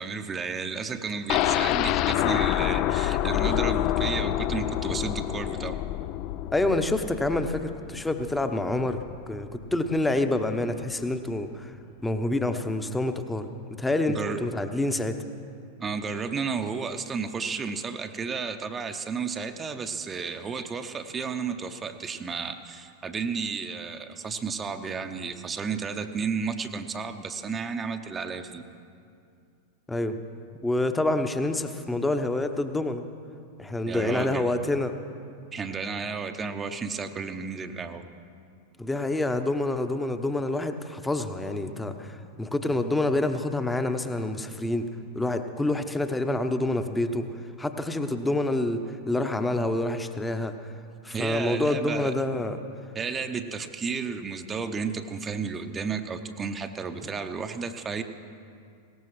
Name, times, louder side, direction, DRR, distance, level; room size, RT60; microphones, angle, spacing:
voice 1, 0.0-5.8 14.1-14.4 15.8-28.6 33.9-34.5 35.5-38.0 51.1-52.1 52.9-58.0, right 5 dB, 20° right, 7 dB, 0.7 m, -32 dB
sound 1, 1.3-9.2 9.5-9.6 10.0-10.1, left 13 dB, 40° left, 0.4 m, -27 dB
voice 2, 6.5-11.7 12.0-13.5 13.8-15.2 29.9-30.2 30.6-33.0 33.6-34.9 38.8-44.9 45.1-47.3 47.6-50.6 51.0-52.6, left 2 dB, 10° left, 8 dB, 0.9 m, -27 dB
21.0 x 18.5 x 3.2 m, 2.4 s
figure-of-eight pair, 90°, 0 cm